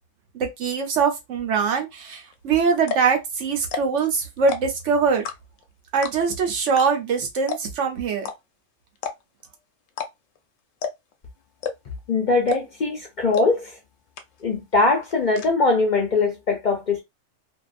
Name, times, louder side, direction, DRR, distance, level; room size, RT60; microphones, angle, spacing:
voice 1, 0.3-5.2 5.9-8.3, right 5 dB, 75° right, 1.1 m, -23 dB
sound 1, 2.3-2.4 2.8-3.1 3.6-4.0 4.4-4.8 5.2-5.6 6.0-6.4 6.8-6.9 7.1-7.2 7.5-7.8 8.2-8.4 9.0-9.4 9.9-10.1 10.4-10.5 10.8-11.1 11.6-12.0 12.5-12.8 13.3-13.4 13.8-13.9 14.2-14.6 14.9-15.5, left 6 dB, 90° left, 1.0 m, -30 dB
voice 2, 12.1-13.7 14.4-17.0, left 3 dB, 50° left, 0.6 m, -21 dB
2.6 x 2.4 x 2.4 m
omnidirectional pair, 1.3 m